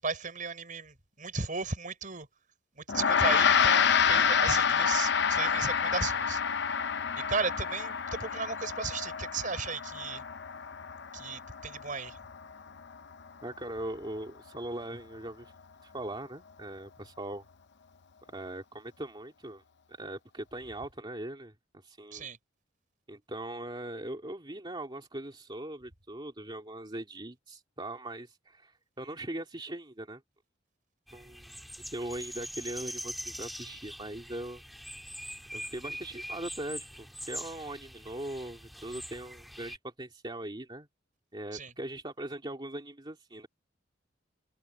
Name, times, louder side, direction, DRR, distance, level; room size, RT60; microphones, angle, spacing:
voice 1, 0.0-2.3 2.8-6.4 7.3-10.2 11.1-12.2 22.1-22.4 41.5-41.7, right 4 dB, 45° right, 6.3 m, -35 dB
Gong, 2.9-12.5, left 7 dB, 65° left, 0.7 m, -28 dB
voice 2, 13.4-15.5 15.8-17.4 18.3-19.6 19.9-22.3 23.1-30.2 31.1-31.5 31.8-34.6 35.5-40.9 41.3-43.5, right 1 dB, 25° right, 2.7 m, -40 dB
sound 1, 31.1-39.8, equal, ahead, 2.0 m, -43 dB
head